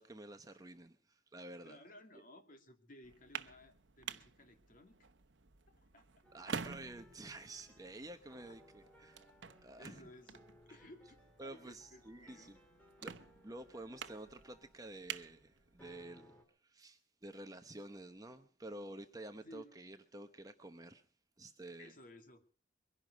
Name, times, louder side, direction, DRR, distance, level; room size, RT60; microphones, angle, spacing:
voice 1, 0.0-1.8 6.3-9.2 9.6-10.1 10.7-10.8 11.4-12.6 13.0-16.3 16.6-21.1 21.4-21.9, right 1 dB, 20° right, 0.9 m, -50 dB
voice 2, 1.6-5.1 5.7-6.1 9.8-12.5 19.4-19.9 21.8-22.4, left 1 dB, 45° left, 2.5 m, -58 dB
sound 1, 3.0-16.1, right 6 dB, 75° right, 1.0 m, -50 dB
sound 2, 6.2-16.4, equal, 5° left, 3.0 m, -64 dB
23.0 x 11.5 x 5.2 m
head